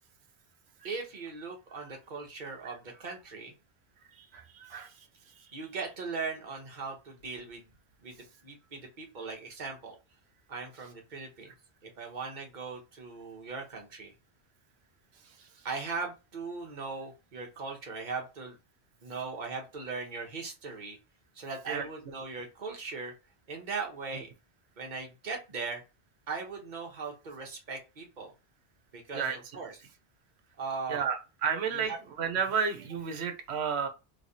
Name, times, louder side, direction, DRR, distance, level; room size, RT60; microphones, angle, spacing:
voice 1, 0.8-3.5 4.6-4.9 5.5-7.6 8.0-8.2 8.4-9.9 10.5-11.5 11.8-14.1 15.6-18.6 19.0-21.0 21.3-23.1 23.5-24.3 24.8-25.8 26.3-28.3 28.9-29.7 30.6-31.0 31.7-32.0, right 4 dB, 45° right, 2 dB, 1.1 m, -39 dB
voice 2, 30.9-31.9 32.2-33.9, right 6 dB, 80° right, 7 dB, 1.0 m, -31 dB
3.2 x 3.2 x 2.7 m, 0.27 s
omnidirectional pair, 1.1 m